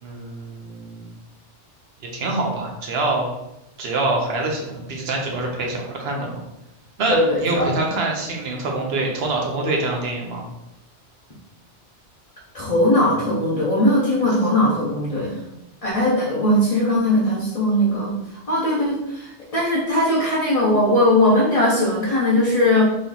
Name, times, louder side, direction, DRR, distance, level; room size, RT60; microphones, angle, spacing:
voice 1, 0.0-1.1 2.1-3.3 3.8-6.4 7.0-10.4, right 2 dB, 60° right, 0 dB, 1.0 m, -25 dB
voice 2, 7.1-7.7 12.5-15.4 15.8-18.1 18.5-22.9, left 1 dB, 35° left, -5 dB, 0.8 m, -19 dB
3.1 x 2.8 x 4.0 m, 0.89 s
omnidirectional pair, 1.2 m